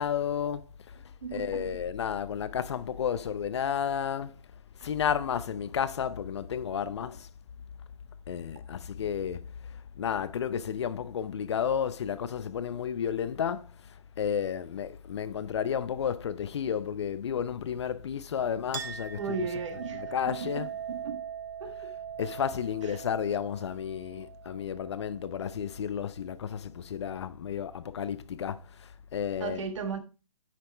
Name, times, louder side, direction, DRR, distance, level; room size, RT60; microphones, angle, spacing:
voice 1, 0.0-1.0 1.3-4.4 4.8-7.3 8.3-19.5 19.7-20.7 22.2-29.7, left 8 dB, 50° left, 0.6 m, -32 dB
voice 2, 1.2-1.8 19.2-21.2 21.6-21.9 22.9-23.0 29.4-30.0, right 5 dB, 55° right, 1.6 m, -36 dB
Chink clink, 18.7-25.8, right 9 dB, 35° right, 0.8 m, -42 dB
10.0 x 5.9 x 3.3 m
hypercardioid pair, 150°, 19 cm